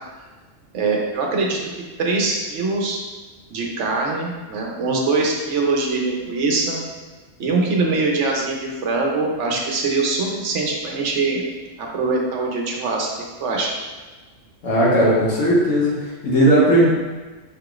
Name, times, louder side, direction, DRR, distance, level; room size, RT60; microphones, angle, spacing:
voice 1, 0.7-1.6 2.0-3.0 3.5-6.8 7.4-11.4 11.8-13.1 13.4-13.7, right 3 dB, 70° right, 0 dB, 1.1 m, -22 dB
voice 2, 14.6-16.8, right 1 dB, 90° left, -6 dB, 1.7 m, -17 dB
4.8 x 4.4 x 2.5 m, 1.3 s
omnidirectional pair, 1.3 m